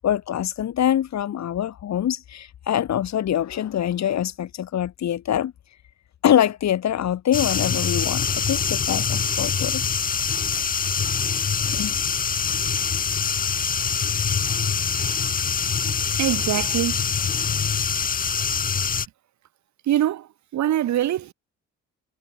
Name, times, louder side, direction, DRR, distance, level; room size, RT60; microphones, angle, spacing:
voice 1, 0.0-5.5 6.2-10.1 11.7-12.0, left 10 dB, 65° left, 2.3 m, -24 dB
sound 1, 7.3-19.1, left 6 dB, 30° left, 0.7 m, -24 dB
voice 2, 16.2-17.0 19.9-21.3, right 12 dB, 65° right, 1.5 m, -23 dB
cardioid pair, 90°, 30 cm